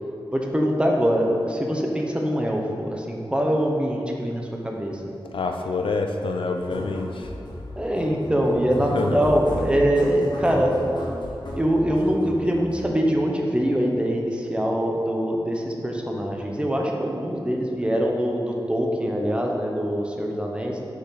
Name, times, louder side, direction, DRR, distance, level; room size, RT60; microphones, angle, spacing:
voice 1, 0.3-5.0 7.8-10.8 11.5-20.8, equal, 10° right, 0 dB, 0.9 m, -23 dB
voice 2, 5.3-7.3 8.8-9.2, left 3 dB, 80° left, 5 dB, 0.5 m, -27 dB
sound 1, 6.5-12.9, equal, 60° left, 1.2 m, -35 dB
6.6 x 4.8 x 4.0 m, 2.6 s
cardioid pair, 55°, 9 cm